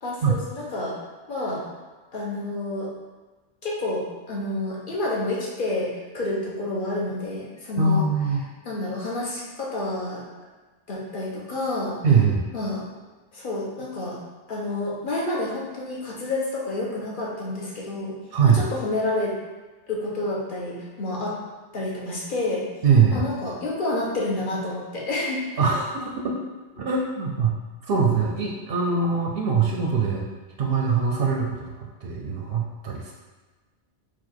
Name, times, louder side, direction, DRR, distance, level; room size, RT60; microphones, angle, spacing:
voice 1, 0.0-1.0 1.3-1.6 2.1-2.9 3.6-8.0 8.6-10.2 10.9-12.0 12.5-12.8 13.3-14.2 14.5-18.1 18.4-19.3 19.9-21.4 21.7-22.7 23.1-25.4 26.8-26.9, left 2 dB, 50° left, -4 dB, 0.9 m, -29 dB
voice 2, 7.8-8.4 12.0-12.5 18.3-18.6 22.8-23.2 25.6-26.4 26.8-27.5 27.8-30.3 30.6-33.1, right 5 dB, 65° right, 0 dB, 0.7 m, -22 dB
4.4 x 2.4 x 4.3 m, 1.3 s
omnidirectional pair, 1.2 m